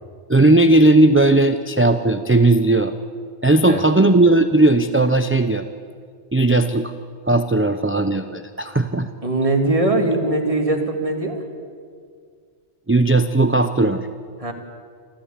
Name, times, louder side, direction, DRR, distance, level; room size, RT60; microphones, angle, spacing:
voice 1, 0.3-2.9 3.4-5.6 6.3-6.9 7.3-9.1 12.9-14.1, right 2 dB, 15° right, 8 dB, 0.5 m, -16 dB
voice 2, 9.2-11.4 14.4-14.5, right 2 dB, 30° right, 3 dB, 2.3 m, -21 dB
26.0 x 14.5 x 8.6 m, 2.1 s
omnidirectional pair, 1.2 m